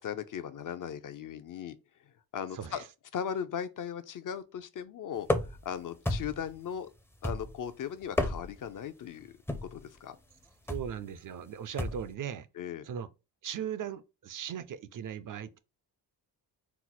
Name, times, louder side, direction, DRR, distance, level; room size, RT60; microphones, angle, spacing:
voice 1, 0.0-1.8 2.3-2.8 3.1-6.9 7.2-10.2 12.5-12.9, left 8 dB, 50° left, 0.6 m, -38 dB
sound 1, 5.2-5.7 6.0-6.5 7.2-7.7 8.0-8.7 9.5-9.8 10.7-11.0 11.8-12.1, left 1 dB, 5° left, 0.5 m, -32 dB
voice 2, 10.7-12.5 12.8-13.1 13.4-15.6, right 8 dB, 50° right, 0.5 m, -38 dB
4.4 x 2.0 x 4.0 m
cardioid pair, 105°, 42 cm